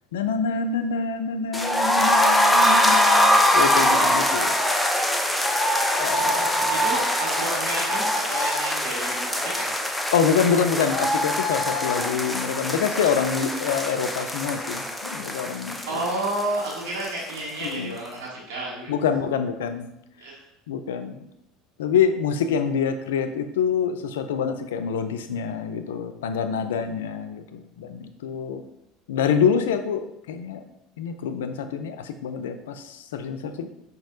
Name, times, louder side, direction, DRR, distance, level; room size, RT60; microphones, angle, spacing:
voice 1, 0.1-4.5 6.0-6.9 10.1-16.0 17.6-18.0 18.9-19.9 20.7-21.2 21.8-28.6 29.1-30.6 31.0-33.7, left 6 dB, 80° left, 9 dB, 0.4 m, -26 dB
sound 1, 1.5-17.4 17.6-17.7 18.0-18.1, left 1 dB, 5° left, 0.5 m, -23 dB
voice 2, 6.2-9.7 15.9-18.9 20.2-20.4, right 1 dB, 70° right, -4 dB, 1.4 m, -31 dB
5.2 x 2.7 x 3.8 m, 0.80 s
hypercardioid pair, 75°, 0 cm